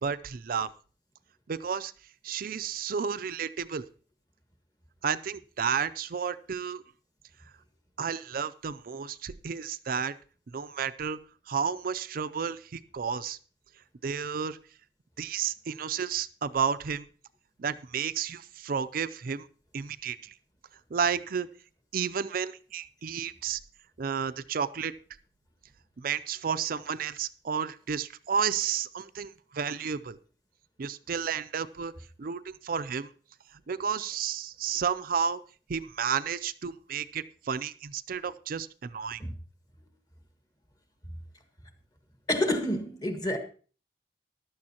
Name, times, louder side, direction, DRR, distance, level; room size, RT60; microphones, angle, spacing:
voice 1, 0.0-0.7 1.5-1.9 2.2-3.8 5.0-6.8 8.0-10.1 10.5-11.2 11.5-13.4 14.0-14.6 15.2-17.0 17.6-19.5 19.7-20.3 20.9-21.5 21.9-23.6 24.0-24.9 26.0-30.2 30.8-31.9 32.2-33.1 33.7-35.4 35.7-39.2, right 7 dB, 55° right, 0.5 m, -32 dB
voice 2, 42.3-43.4, left 1 dB, 20° left, 1.5 m, -28 dB
15.0 x 11.5 x 2.9 m
head